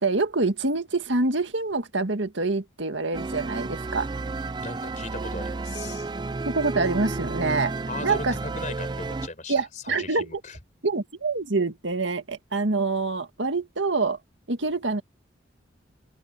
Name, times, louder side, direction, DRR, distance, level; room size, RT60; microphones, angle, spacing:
voice 1, 0.0-4.1 6.5-7.7 8.0-8.3 9.5-10.3 10.8-14.2 14.5-15.0, right 3 dB, 75° right, 1.9 m, -26 dB
sound 1, 3.1-9.3, right 3 dB, 25° right, 0.4 m, -32 dB
voice 2, 4.6-6.1 7.9-10.6, left 3 dB, 40° left, 4.4 m, -38 dB
open air
head